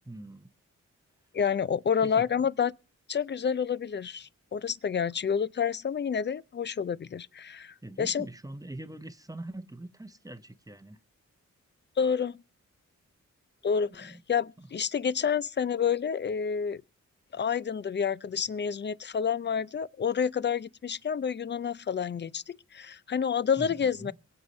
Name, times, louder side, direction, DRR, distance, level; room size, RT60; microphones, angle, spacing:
voice 1, 0.0-0.5 2.0-2.3 7.5-11.0 14.0-14.2 14.6-14.7 23.6-24.2, right 1 dB, 10° right, 0.8 m, -43 dB
voice 2, 1.3-2.7 3.1-8.3 12.0-12.4 13.6-16.8 17.3-24.1, left 7 dB, 35° left, 0.5 m, -29 dB
23.0 x 8.0 x 3.2 m
cardioid pair, 55°, 31 cm